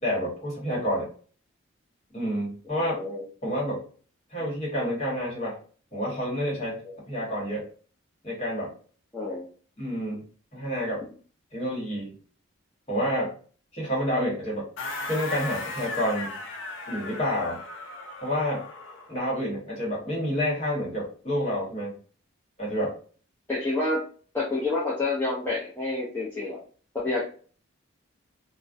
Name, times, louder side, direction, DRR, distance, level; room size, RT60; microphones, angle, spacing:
voice 1, 0.0-1.1 2.1-3.0 3.4-3.8 4.3-5.6 5.9-6.8 7.1-7.6 8.2-8.7 9.8-10.2 10.5-11.0 11.5-12.1 12.9-13.3 13.7-14.7 15.1-16.3 16.9-17.6 18.2-18.6 19.1-21.9 22.6-22.9, equal, 30° left, -5 dB, 1.1 m, -28 dB
voice 2, 9.1-9.4 23.5-24.0 24.3-26.6 26.9-27.3, left 2 dB, 10° left, -7 dB, 0.4 m, -28 dB
sound 1, 14.8-19.2, left 2 dB, 65° left, 0.5 m, -36 dB
2.4 x 2.1 x 2.5 m, 0.41 s
head